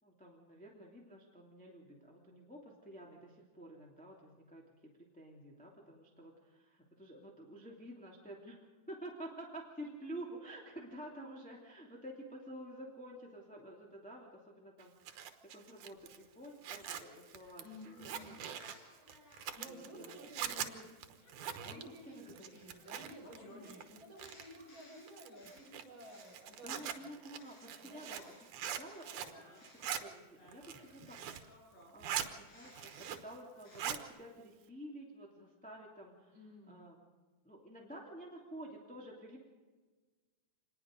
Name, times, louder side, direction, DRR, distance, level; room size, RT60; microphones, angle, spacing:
voice 1, 0.0-8.6 8.9-18.3 19.6-20.1 21.6-22.6 26.6-31.5 31.9-37.0 37.4-39.4, right 1 dB, 5° left, -2 dB, 2.4 m, -50 dB
Zipper (clothing), 14.8-23.4 23.6-24.6 25.1-29.4 29.6-30.0 30.5-31.5 31.8-32.3 32.6-33.4 33.6-34.0, right 9 dB, 85° right, 2.7 m, -43 dB
sound 1, 15.6-19.7 20.2-28.5 28.8-34.0, left 1 dB, 60° left, 6.2 m, -61 dB
voice 2, 17.6-18.4 19.5-21.1 21.7-27.1 27.8-28.1 36.3-36.9, equal, 40° right, -2 dB, 7.4 m, -53 dB
26.0 x 20.5 x 5.2 m, 1.3 s
omnidirectional pair, 3.4 m